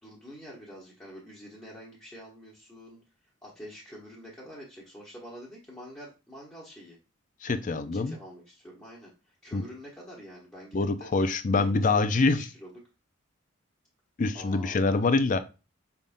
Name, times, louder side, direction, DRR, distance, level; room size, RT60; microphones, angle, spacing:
voice 1, 0.0-3.0 3.4-7.0 7.5-11.1 11.5-12.8 14.3-14.9, equal, 10° left, -6 dB, 1.1 m, -46 dB
voice 2, 7.4-8.2 9.5-9.6 10.7-12.4 14.2-15.4, left 3 dB, 40° left, 11 dB, 0.4 m, -25 dB
5.1 x 3.5 x 2.6 m, 0.31 s
head